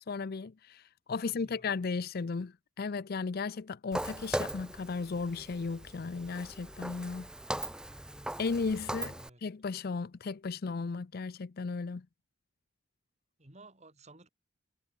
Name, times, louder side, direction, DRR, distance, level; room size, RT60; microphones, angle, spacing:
voice 1, 0.1-7.3 8.4-9.1 9.4-12.1, left 4 dB, 45° left, 0.5 m, -35 dB
voice 2, 1.2-1.7 8.8-9.4 13.4-14.3, right 2 dB, 30° right, 3.4 m, -55 dB
Walk footsteps, 3.9-9.3, right 1 dB, 5° right, 1.0 m, -39 dB
head